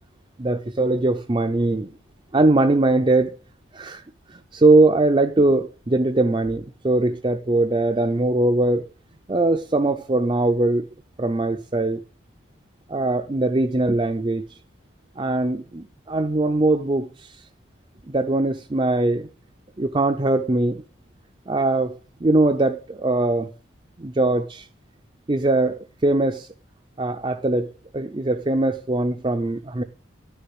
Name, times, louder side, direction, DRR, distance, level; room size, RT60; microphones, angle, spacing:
voice 1, 0.4-1.9 2.3-3.4 3.7-4.0 4.3-8.8 9.3-10.9 11.2-12.0 12.9-14.5 15.2-17.4 18.1-19.3 19.8-20.8 21.5-23.5 24.0-24.7 25.3-26.5 27.0-29.8, right 2 dB, 25° right, 0.5 m, -21 dB
12.0 x 6.8 x 7.9 m
head